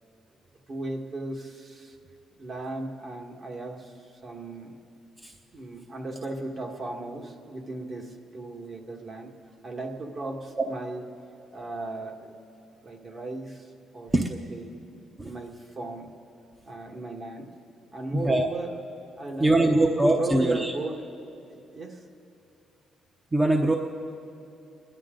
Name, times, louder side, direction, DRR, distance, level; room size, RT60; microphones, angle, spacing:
voice 1, 0.7-2.0 2.4-4.8 5.5-9.3 9.6-11.0 11.5-12.4 12.8-14.8 15.2-16.1 16.7-17.5 17.9-18.7 19.2-21.1 21.5-22.0, right 2 dB, 45° right, 1 dB, 1.7 m, -36 dB
voice 2, 18.1-18.5 19.4-20.7 23.3-23.7, right 2 dB, 20° right, 2 dB, 0.9 m, -22 dB
27.5 x 11.0 x 3.8 m, 2.7 s
cardioid pair, 90°, 0 cm